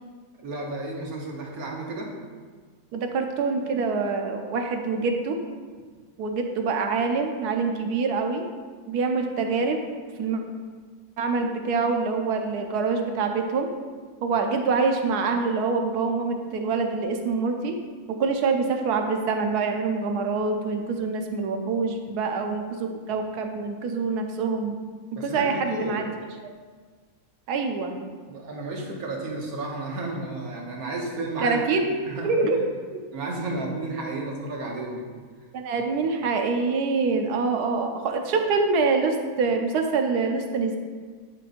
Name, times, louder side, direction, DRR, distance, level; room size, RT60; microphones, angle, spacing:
voice 1, 0.4-2.1 25.2-26.0 28.3-32.3 33.1-35.1 35.8-35.9, right 2 dB, 70° right, -1 dB, 1.5 m, -32 dB
voice 2, 2.9-5.4 6.2-8.5 8.9-9.8 10.2-10.4 11.2-13.7 14.2-17.7 18.1-24.8 25.2-26.1 27.5-28.0 31.4-31.9 32.2-32.6 32.9-33.0 35.5-40.8, right 4 dB, 85° right, 4 dB, 1.3 m, -25 dB
9.6 x 5.1 x 2.5 m, 1.5 s
omnidirectional pair, 1.6 m